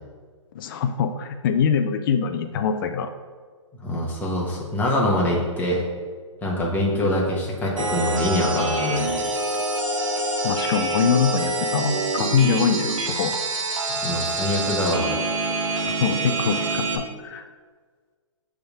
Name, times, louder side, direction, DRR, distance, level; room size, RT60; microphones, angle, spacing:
voice 1, 0.5-3.1 6.9-7.2 10.4-13.4 15.8-17.4, left 7 dB, 45° left, 8 dB, 0.5 m, -24 dB
voice 2, 3.8-5.8 6.4-9.1 13.9-15.2, left 1 dB, 10° left, -3 dB, 1.4 m, -24 dB
sound 1, 7.8-17.0, right 2 dB, 85° right, 1.3 m, -26 dB
7.6 x 3.6 x 5.5 m, 1.5 s
hypercardioid pair, 140°, 16 cm